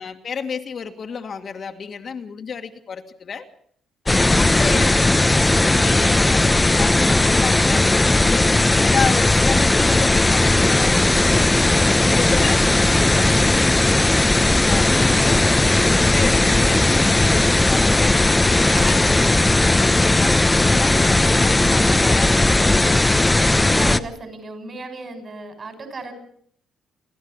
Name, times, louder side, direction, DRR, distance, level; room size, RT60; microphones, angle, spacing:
voice 1, 0.0-3.5 4.0-5.1 5.4-11.6 12.1-12.6 12.9-13.0 14.6-15.5 16.1-18.4 18.7-19.3 19.7-20.4 20.7-22.9, left 6 dB, 50° left, 5 dB, 1.8 m, -31 dB
sound 1, 4.1-24.0, left 2 dB, 15° left, 0.9 m, -17 dB
voice 2, 11.0-11.5 11.8-12.5 12.8-14.0 14.8-15.8 16.1-16.6 23.3-26.1, right 2 dB, 40° right, 7 dB, 6.7 m, -37 dB
sound 2, 18.5-21.2 21.9-22.4 23.2-23.9, right 4 dB, 75° right, 7.6 m, -43 dB
29.5 x 12.5 x 7.2 m, 0.64 s
cardioid pair, 90°, 0 cm